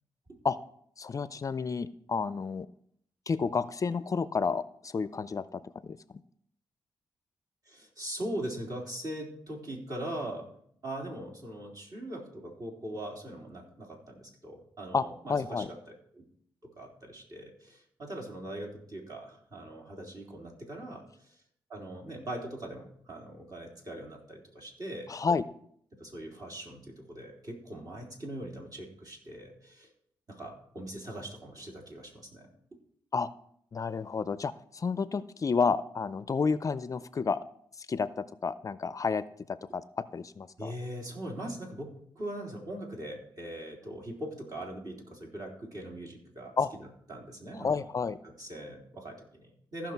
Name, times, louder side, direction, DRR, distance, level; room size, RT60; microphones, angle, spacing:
voice 1, 1.0-2.7 3.3-6.0 14.9-15.7 25.1-25.5 33.1-33.3 33.7-37.4 37.8-40.7 46.6-46.7 47.5-48.2, left 5 dB, 40° left, 14 dB, 0.5 m, -31 dB
voice 2, 7.7-10.5 10.8-15.6 16.1-16.3 16.8-21.0 21.7-25.1 26.0-29.9 30.3-32.5 40.6-46.5 47.1-47.8 48.2-49.9, right 1 dB, 45° right, 0 dB, 3.5 m, -41 dB
15.0 x 5.9 x 4.6 m, 0.67 s
cardioid pair, 75°, 9 cm